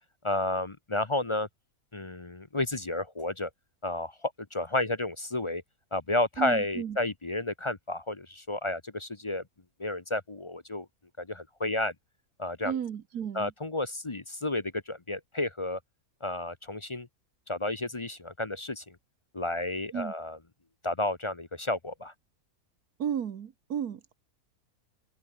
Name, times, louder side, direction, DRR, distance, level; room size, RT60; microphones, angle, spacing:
voice 1, 0.2-1.5 1.9-3.5 3.8-5.6 5.9-9.4 9.8-10.9 11.2-11.9 12.4-12.8 13.3-15.8 16.2-17.1 17.5-19.0 19.3-20.4 20.8-22.1, left 2 dB, 25° left, 0.8 m, -31 dB
voice 2, 6.4-7.0 12.6-13.5 19.9-20.1 23.0-24.1, right 8 dB, 80° right, 1.7 m, -33 dB
omnidirectional pair, 1.6 m